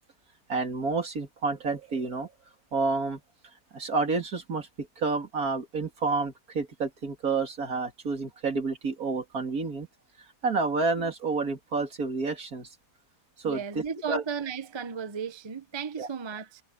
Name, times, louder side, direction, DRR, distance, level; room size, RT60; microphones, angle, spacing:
voice 1, 0.5-2.3 2.7-3.2 3.7-9.9 10.4-12.7 13.4-14.2 16.0-16.1, right 4 dB, 60° right, 3.1 m, -29 dB
voice 2, 13.4-16.6, right 6 dB, 25° right, 0.6 m, -35 dB
omnidirectional pair, 1.7 m